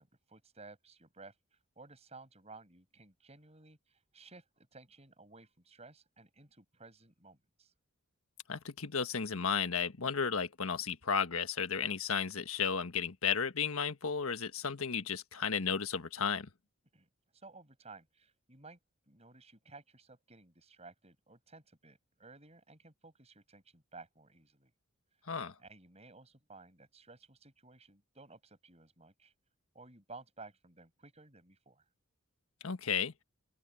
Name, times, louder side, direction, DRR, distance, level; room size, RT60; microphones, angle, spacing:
voice 1, 0.0-7.7 16.9-18.8 19.1-24.7 25.2-29.3 29.7-31.9, right 3 dB, 30° right, 7.2 m, -56 dB
voice 2, 8.5-16.5 25.3-25.5 32.6-33.1, left 6 dB, 90° left, 1.5 m, -33 dB
open air
head